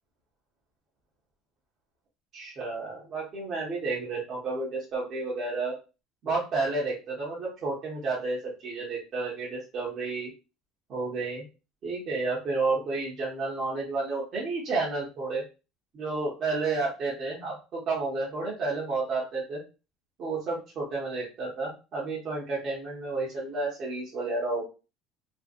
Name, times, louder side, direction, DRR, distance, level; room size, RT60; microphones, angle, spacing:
voice 1, 2.3-5.7 6.2-10.3 10.9-11.4 11.8-15.4 15.9-19.6 20.2-24.6, right 3 dB, 30° right, -6 dB, 0.7 m, -31 dB
2.5 x 2.1 x 2.4 m, 0.31 s
cardioid pair, 180°, 0 cm